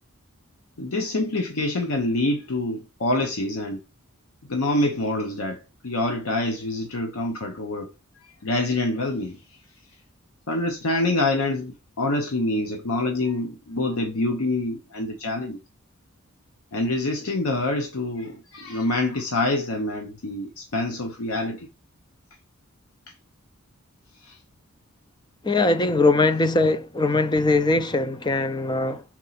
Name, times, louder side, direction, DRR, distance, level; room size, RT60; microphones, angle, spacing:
voice 1, 0.8-3.8 4.5-5.6 5.8-7.9 8.4-9.4 10.5-15.6 16.7-21.7 24.2-24.4, left 2 dB, 85° left, 0.9 m, -26 dB
voice 2, 25.4-29.0, left 2 dB, 20° left, 0.5 m, -21 dB
6.0 x 4.4 x 4.1 m
head